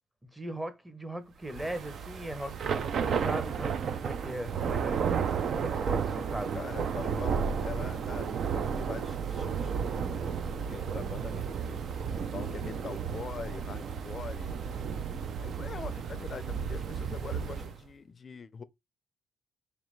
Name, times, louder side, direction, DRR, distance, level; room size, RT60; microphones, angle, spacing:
voice 1, 0.3-5.0 5.6-6.6 7.1-7.3, right 1 dB, 10° right, 0.8 m, -39 dB
Thunder / Rain, 1.5-17.8, right 6 dB, 60° right, 0.4 m, -33 dB
voice 2, 6.5-10.3 10.6-11.8 12.3-14.7 15.4-18.6, left 5 dB, 40° left, 0.4 m, -43 dB
4.0 x 3.2 x 3.1 m
cardioid pair, 90°, 0 cm